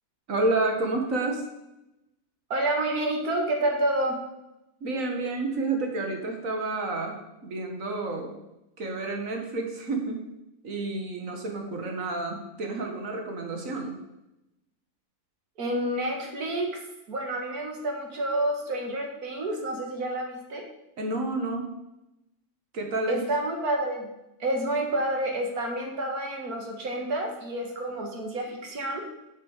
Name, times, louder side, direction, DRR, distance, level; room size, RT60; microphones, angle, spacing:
voice 1, 0.3-1.5 4.8-8.4 8.8-10.3 10.6-14.0 21.0-21.8 22.7-23.2, right 2 dB, 60° right, 2 dB, 2.0 m, -30 dB
voice 2, 2.5-4.2 15.6-16.8 17.1-20.6 23.1-24.1 24.4-29.0, right 1 dB, 80° right, 2 dB, 2.2 m, -29 dB
7.4 x 6.8 x 6.5 m, 0.91 s
omnidirectional pair, 1.6 m